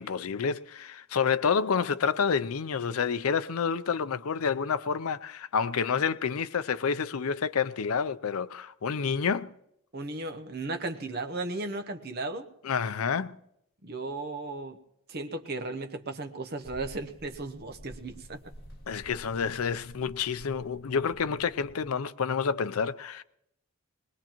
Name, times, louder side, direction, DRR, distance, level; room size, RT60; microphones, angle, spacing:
voice 1, 0.0-9.5 12.6-13.4 18.9-23.2, left 6 dB, 80° left, 0.5 m, -29 dB
voice 2, 9.9-12.5 13.8-14.8 15.1-18.4, right 2 dB, 45° right, 0.9 m, -35 dB
sound 1, 16.6-21.9, equal, 45° left, 2.4 m, -50 dB
21.0 x 20.0 x 3.0 m
head